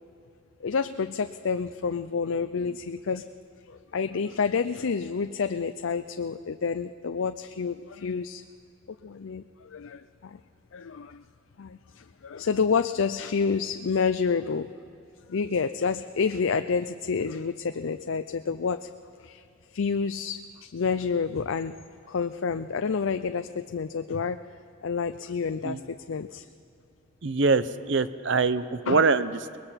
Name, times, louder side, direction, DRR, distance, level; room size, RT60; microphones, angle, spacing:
voice 1, 0.6-3.3 3.7-8.4 9.0-10.4 10.7-11.2 11.6-14.7 15.3-18.9 19.2-19.4 19.7-21.7 22.1-24.4 24.8-26.5 28.9-29.0, left 5 dB, 75° left, 9 dB, 0.5 m, -29 dB
voice 2, 27.2-29.6, right 4 dB, 60° right, 13 dB, 0.7 m, -24 dB
23.5 x 20.5 x 5.8 m, 2.7 s
head